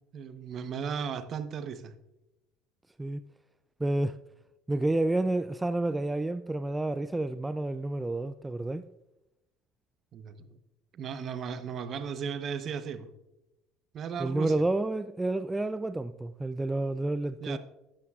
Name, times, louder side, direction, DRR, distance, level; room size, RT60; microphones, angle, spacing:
voice 1, 0.1-1.9 10.1-10.6 10.9-13.1 13.9-14.5 17.4-17.6, right 6 dB, 50° right, 0.9 m, -36 dB
voice 2, 3.8-4.2 4.7-8.8 14.2-17.6, right 2 dB, 10° right, 0.3 m, -29 dB
13.0 x 11.0 x 2.4 m
supercardioid pair, 95°, 0 cm